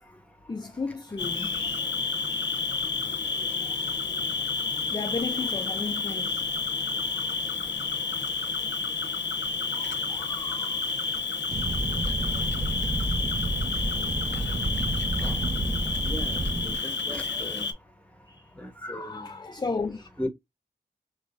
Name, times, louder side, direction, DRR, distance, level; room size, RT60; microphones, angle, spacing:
voice 1, 0.5-2.8 4.9-6.4 9.7-10.9 17.4-17.7 18.3-18.5 18.8-20.1, left 4 dB, 25° left, 0.4 m, -35 dB
Cricket, 1.2-17.7, left 4 dB, 85° left, 0.7 m, -30 dB
Fire, 11.5-16.8, right 2 dB, 35° right, 0.7 m, -30 dB
voice 2, 16.0-17.7 18.6-19.3 20.2-20.3, left 1 dB, 5° left, 1.1 m, -37 dB
3.7 x 2.9 x 2.5 m
wide cardioid pair, 100°, 18 cm